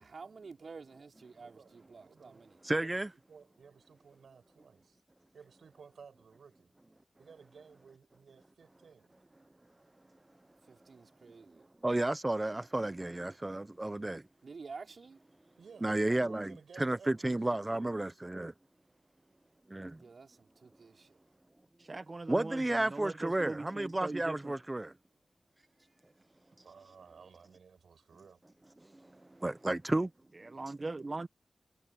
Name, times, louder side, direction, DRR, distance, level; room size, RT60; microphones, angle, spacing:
voice 1, 0.0-2.6 10.6-11.7 14.4-15.2 20.0-21.2, right 4 dB, 60° right, 5.5 m, -50 dB
voice 2, 1.4-2.4 2.8-3.0 3.3-5.0 5.3-6.7 7.2-9.1 15.6-18.0 26.6-28.4, right 6 dB, 80° right, 7.2 m, -57 dB
voice 3, 2.6-3.1 11.8-14.2 15.8-18.5 19.7-20.0 22.3-24.9 28.9-30.1, right 2 dB, 20° right, 0.8 m, -32 dB
voice 4, 21.8-24.5 30.3-31.3, right 3 dB, 40° right, 1.5 m, -41 dB
cardioid pair, 70°, 0 cm